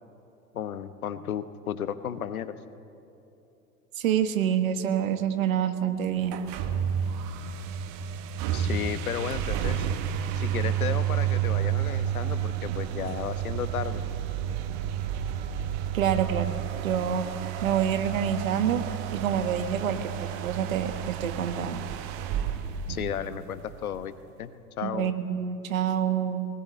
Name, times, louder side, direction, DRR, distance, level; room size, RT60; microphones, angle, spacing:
voice 1, 0.5-2.6 8.5-9.9 10.3-14.0 22.9-24.1 24.4-25.1, left 9 dB, 65° left, 13 dB, 1.1 m, -33 dB
voice 2, 4.0-6.4 15.9-16.5 16.8-17.3 17.6-18.8 19.1-21.8 24.8-26.5, right 9 dB, 60° right, 9 dB, 1.5 m, -27 dB
sound 1, 6.2-23.7, right 9 dB, 40° right, 1.3 m, -31 dB
19.0 x 18.5 x 8.2 m, 2.8 s
figure-of-eight pair, 90°, 46 cm